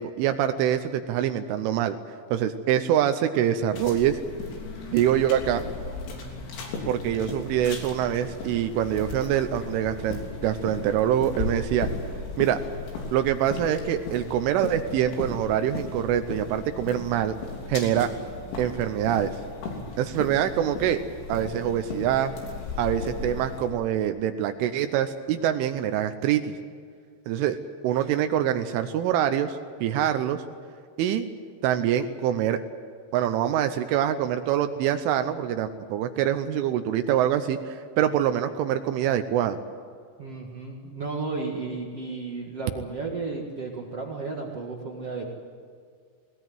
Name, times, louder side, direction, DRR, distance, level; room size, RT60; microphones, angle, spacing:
voice 1, 0.0-2.0 2.3-4.2 4.9-5.6 6.9-11.9 12.4-12.6 13.1-17.4 17.7-18.1 18.6-19.4 20.0-21.0 21.3-22.3 22.8-26.5 27.3-27.6 27.8-30.4 31.0-31.3 31.6-32.6 33.1-39.6, right 10 dB, 80° right, 8 dB, 3.3 m, -25 dB
sound 1, 3.7-23.7, left 4 dB, 75° left, 5.7 m, -36 dB
voice 2, 40.2-45.3, right 3 dB, 65° right, 0 dB, 1.5 m, -33 dB
20.0 x 19.0 x 9.2 m, 2.1 s
omnidirectional pair, 5.7 m